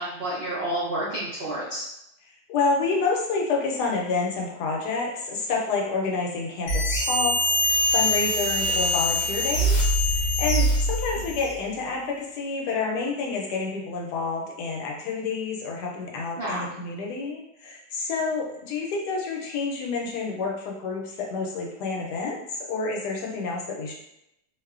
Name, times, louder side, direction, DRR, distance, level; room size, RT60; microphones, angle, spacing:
voice 1, 0.0-1.8 16.4-16.7, right 1 dB, 70° right, -9 dB, 0.5 m, -30 dB
voice 2, 2.5-9.8 10.0-23.9, left 4 dB, 85° left, -1 dB, 1.2 m, -29 dB
sound 1, 6.7-11.5, equal, 65° left, 0.9 m, -23 dB
2.8 x 2.1 x 2.3 m, 0.83 s
omnidirectional pair, 1.7 m